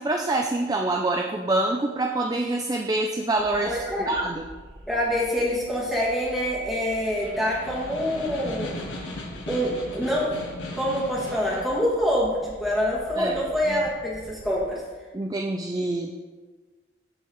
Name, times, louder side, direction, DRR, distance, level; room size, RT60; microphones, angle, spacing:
voice 1, 0.0-4.4 13.2-13.4 13.7-13.8 15.1-16.1, right 2 dB, 20° right, 2 dB, 0.3 m, -26 dB
sound 1, 3.4-14.7, equal, 60° right, 2.3 m, -47 dB
voice 2, 3.6-4.1 4.9-8.8 9.5-10.4 10.8-14.8, equal, ahead, -7 dB, 2.0 m, -26 dB
Snare drum, 6.8-11.8, left 1 dB, 85° left, 1.3 m, -37 dB
13.5 x 4.6 x 3.1 m, 1.4 s
head